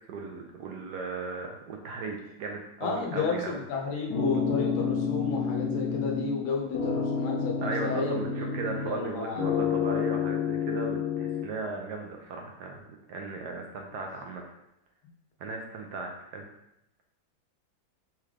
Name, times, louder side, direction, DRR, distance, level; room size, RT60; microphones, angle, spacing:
voice 1, 0.1-3.6 7.6-14.5 15.4-16.5, right 3 dB, 70° right, 2 dB, 1.1 m, -37 dB
voice 2, 2.8-9.7, left 5 dB, 90° left, 0 dB, 1.7 m, -32 dB
sound 1, 4.1-6.4 6.7-9.1 9.4-11.4, left 6 dB, 60° left, 1.3 m, -29 dB
4.4 x 3.6 x 3.3 m, 0.81 s
omnidirectional pair, 2.1 m